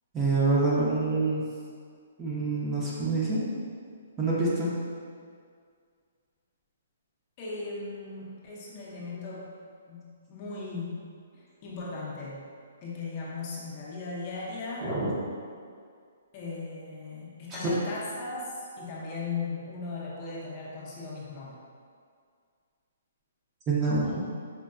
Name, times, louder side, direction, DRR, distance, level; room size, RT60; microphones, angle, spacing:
voice 1, 0.1-1.5 2.2-3.4 4.2-4.7 14.8-15.1 17.5-17.6 23.7-24.2, right 3 dB, 15° right, -7 dB, 0.6 m, -26 dB
voice 2, 7.4-9.5 9.9-11.0 11.3-12.5 12.8-14.9 16.3-21.6, left 3 dB, 35° left, -5 dB, 0.6 m, -37 dB
4.3 x 2.2 x 2.4 m, 2.1 s
hypercardioid pair, 150°, 0 cm